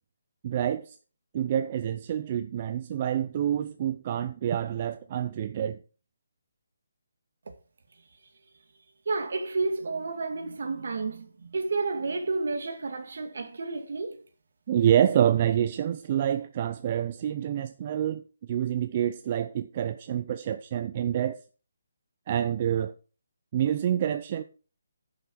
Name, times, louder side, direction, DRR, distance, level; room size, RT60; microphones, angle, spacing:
voice 1, 0.4-1.0 1.3-5.8 14.7-18.2 18.5-21.4 22.3-22.9 23.5-24.4, right 10 dB, 35° right, 0.6 m, -27 dB
voice 2, 9.1-14.2, right 3 dB, 65° right, 2.2 m, -31 dB
11.0 x 6.8 x 4.5 m
hypercardioid pair, 155°, 0 cm